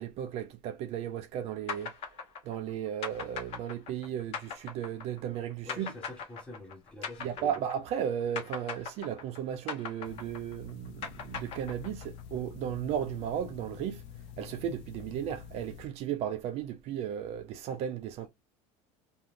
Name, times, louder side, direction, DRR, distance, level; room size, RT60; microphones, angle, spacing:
voice 1, 0.0-1.9 2.5-5.9 7.2-14.0 14.4-18.3, right 9 dB, 45° right, 0.4 m, -35 dB
sound 1, 1.7-8.1 8.4-12.2, left 6 dB, 45° left, 0.8 m, -40 dB
voice 2, 5.6-7.5, left 2 dB, 5° left, 0.8 m, -47 dB
sound 2, 10.0-15.9, left 8 dB, 85° left, 0.5 m, -47 dB
2.5 x 2.3 x 3.0 m
cardioid pair, 155°, 14 cm